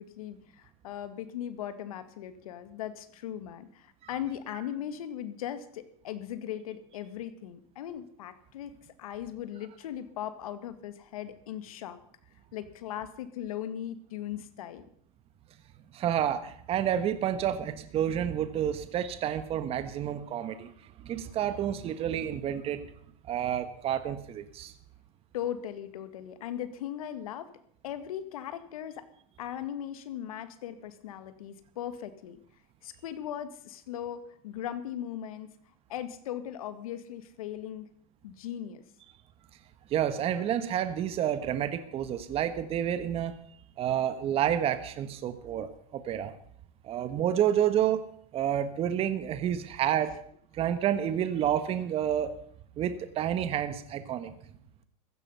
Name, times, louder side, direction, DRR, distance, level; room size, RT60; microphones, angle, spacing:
voice 1, 0.0-12.0 12.5-14.8 25.3-27.5 27.8-29.1 29.4-32.4 32.8-35.5 35.9-37.9 38.2-38.8 50.0-50.1, left 10 dB, 90° left, 11 dB, 1.8 m, -38 dB
voice 2, 15.9-20.7 21.0-22.8 23.3-24.7 39.9-43.3 43.8-46.3 46.8-48.0 48.3-50.1 50.5-52.3 52.8-54.3, right 10 dB, 35° right, 10 dB, 1.3 m, -29 dB
15.5 x 14.5 x 5.6 m, 0.63 s
supercardioid pair, 140°, 18 cm